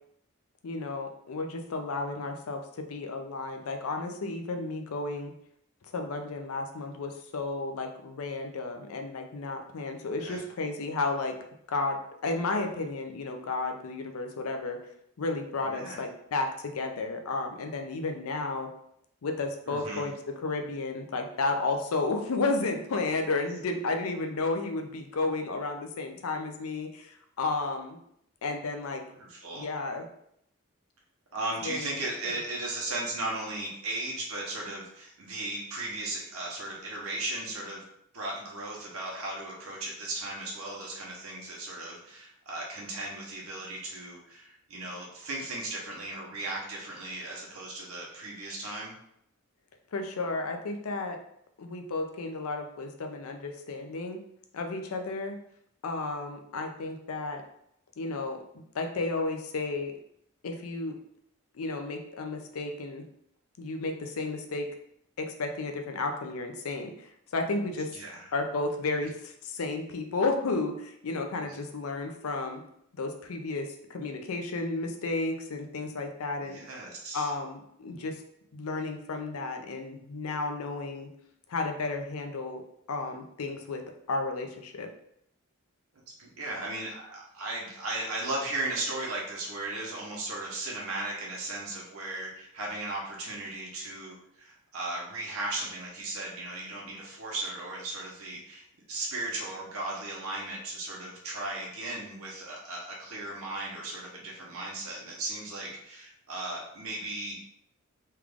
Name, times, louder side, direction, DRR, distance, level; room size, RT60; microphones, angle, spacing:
voice 1, 0.6-5.3 5.9-11.4 11.7-14.8 15.2-18.7 19.2-28.0 28.4-29.0 29.5-30.1 31.6-31.9 32.2-32.3 49.9-51.2 51.6-54.2 54.5-55.4 55.8-57.4 58.0-58.4 58.7-59.9 60.4-61.0 61.5-63.0 63.6-64.7 65.2-67.9 68.3-72.6 72.9-76.6 77.1-78.2 78.5-81.1 81.5-82.6 82.9-84.9, left 3 dB, 80° left, 5 dB, 0.5 m, -32 dB
voice 2, 15.6-16.0 19.7-20.0 29.2-29.6 31.3-37.8 38.1-48.9 67.9-68.3 76.4-77.3 86.2-107.4, right 2 dB, 75° right, -3 dB, 1.0 m, -36 dB
3.2 x 2.4 x 3.5 m, 0.73 s
head